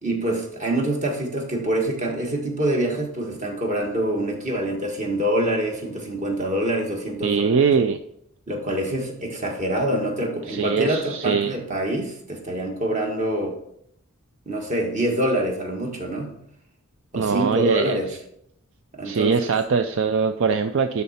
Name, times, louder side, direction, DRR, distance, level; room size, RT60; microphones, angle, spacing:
voice 1, 0.0-7.6 8.5-13.5 14.4-16.3 17.1-18.1 18.9-19.5, right 1 dB, 35° right, 1 dB, 1.6 m, -25 dB
voice 2, 7.2-8.0 10.5-11.5 17.1-18.0 19.0-21.0, right 5 dB, 60° right, 8 dB, 0.4 m, -22 dB
12.0 x 4.2 x 4.3 m, 0.72 s
head